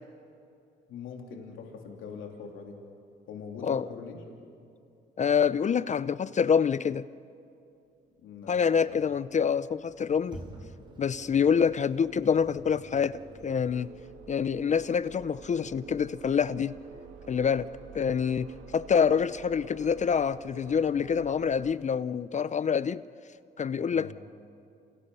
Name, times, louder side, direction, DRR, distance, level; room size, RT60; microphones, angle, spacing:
voice 1, 0.9-2.8 3.3-4.2 8.2-9.1 23.9-24.1, left 6 dB, 85° left, 3.1 m, -43 dB
voice 2, 5.2-7.1 8.5-10.4 11.0-13.9 14.3-16.8 17.3-17.7 17.9-23.0 23.6-24.1, left 7 dB, 35° left, 0.5 m, -26 dB
sound 1, 8.1-21.7, right 5 dB, 80° right, 2.2 m, -49 dB
Sliding door, 9.8-14.3, right 1 dB, 25° right, 4.2 m, -49 dB
29.0 x 28.0 x 5.5 m
cardioid pair, 90°, 20 cm